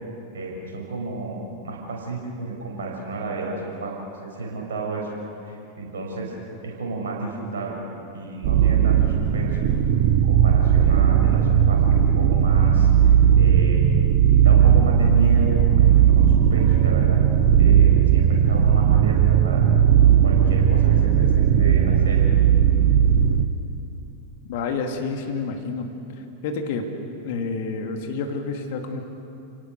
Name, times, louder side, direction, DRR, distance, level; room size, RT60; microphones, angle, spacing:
voice 1, 0.3-5.1 5.4-6.3 6.6-7.8 8.1-9.7 10.1-13.9 14.4-17.2 17.6-19.6 20.2-22.3, right 3 dB, 65° right, -1 dB, 6.3 m, -32 dB
sound 1, 8.4-23.5, right 9 dB, 45° right, 1.2 m, -17 dB
voice 2, 24.5-25.9 26.4-26.9 27.2-29.0, left 4 dB, 50° left, 4 dB, 2.5 m, -28 dB
30.0 x 18.0 x 6.6 m, 2.7 s
figure-of-eight pair, 90°, 0 cm